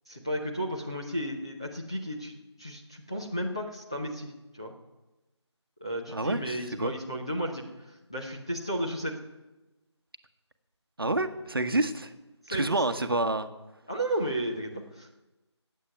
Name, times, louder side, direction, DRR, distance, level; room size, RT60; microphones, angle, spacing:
voice 1, 0.1-4.7 5.8-7.6 8.1-9.2 12.5-12.8 13.9-15.1, right 1 dB, 10° left, -3 dB, 0.6 m, -33 dB
voice 2, 6.1-6.9 11.0-12.1 12.5-13.5, right 2 dB, 50° right, 9 dB, 1.1 m, -28 dB
14.0 x 8.3 x 9.5 m, 1.1 s
figure-of-eight pair, 165°, 15 cm